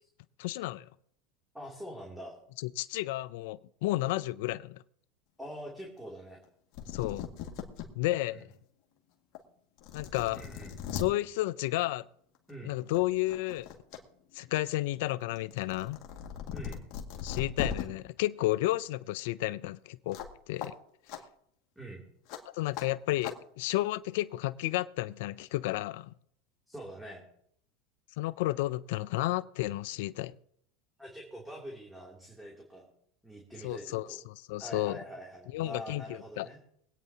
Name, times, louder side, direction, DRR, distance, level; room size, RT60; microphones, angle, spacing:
voice 1, 0.4-0.9 2.6-4.8 6.9-7.3 8.0-8.5 9.9-10.4 10.9-12.0 12.6-13.7 14.3-16.0 17.2-20.7 22.5-26.1 28.2-30.3 33.6-35.0 35.5-36.5, left 17 dB, 75° left, 0.4 m, -32 dB
voice 2, 1.5-2.4 5.4-6.4 8.3-8.4 10.3-10.7 12.5-12.7 16.5-16.8 21.8-22.0 26.7-27.2 31.0-32.9 33.2-34.2 34.6-36.6, equal, 5° right, 2.8 m, -44 dB
sound 1, 6.5-6.6 6.7-7.9 8.4-8.5 9.3-9.4 9.8-11.1 12.3-12.5 12.9-14.0 14.3-17.8 20.1-20.3 20.6-20.7 21.1-21.2 22.3-22.4 22.7-22.9 23.2-23.4, left 8 dB, 55° left, 2.0 m, -39 dB
23.5 x 9.1 x 2.8 m
supercardioid pair, 110°, 0 cm